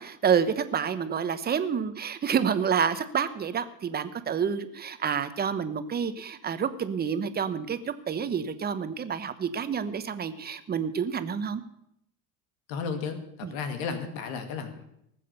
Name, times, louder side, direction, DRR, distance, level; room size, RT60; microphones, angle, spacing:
voice 1, 0.0-11.6 13.4-13.5, right 7 dB, 25° right, 11 dB, 1.0 m, -28 dB
voice 2, 12.7-14.9, left 5 dB, 85° left, 7 dB, 2.2 m, -34 dB
19.0 x 7.6 x 6.8 m, 0.76 s
supercardioid pair, 125°, 40 cm